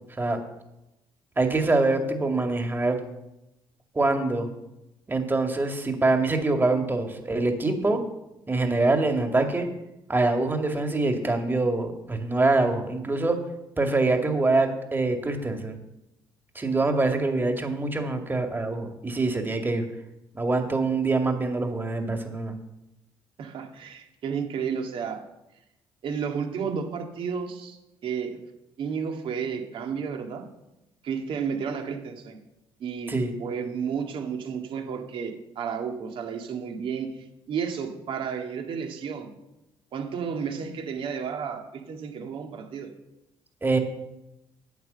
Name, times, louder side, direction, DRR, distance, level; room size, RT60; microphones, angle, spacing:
voice 1, 1.4-3.0 3.9-4.5 5.1-8.0 8.5-9.7 10.1-13.4 13.8-15.8 16.6-19.8 20.3-22.5 33.1-33.3 43.6-43.8, right 3 dB, 20° right, 5 dB, 2.2 m, -24 dB
voice 2, 23.4-25.2 26.0-28.4 28.8-30.4 31.0-32.4 32.8-33.1 33.4-37.1 37.5-39.3 39.9-42.9, right 6 dB, 65° right, 4 dB, 1.9 m, -32 dB
9.4 x 7.7 x 6.8 m, 0.92 s
supercardioid pair, 70°, 9 cm